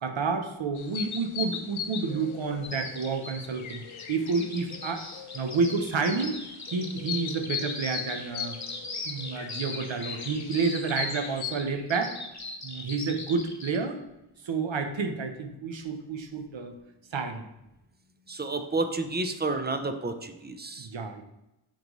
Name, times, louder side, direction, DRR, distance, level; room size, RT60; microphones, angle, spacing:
voice 1, 0.0-3.8 4.1-5.1 5.3-6.4 6.7-8.6 9.0-12.1 12.6-14.0 14.4-16.7 17.1-17.5 20.8-21.2, right 4 dB, 65° right, 5 dB, 0.9 m, -30 dB
sound 1, 0.7-11.5, left 8 dB, 70° left, 0.6 m, -39 dB
Bird vocalization bird call bird song, 2.6-13.8, left 3 dB, 35° left, 1.1 m, -39 dB
voice 2, 18.3-20.9, right 3 dB, 20° right, 8 dB, 0.5 m, -30 dB
8.5 x 3.9 x 3.1 m, 0.90 s
wide cardioid pair, 100°, 49 cm